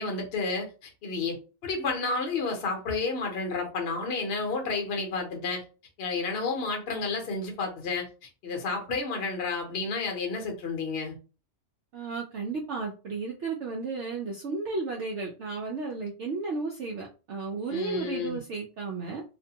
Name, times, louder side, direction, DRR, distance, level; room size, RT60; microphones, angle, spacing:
voice 1, 0.0-5.6 6.0-11.2 17.7-18.4, left 4 dB, 50° left, 0.8 m, -31 dB
voice 2, 11.9-19.2, right 4 dB, 65° right, 0.7 m, -33 dB
2.6 x 2.1 x 2.7 m
omnidirectional pair, 1.6 m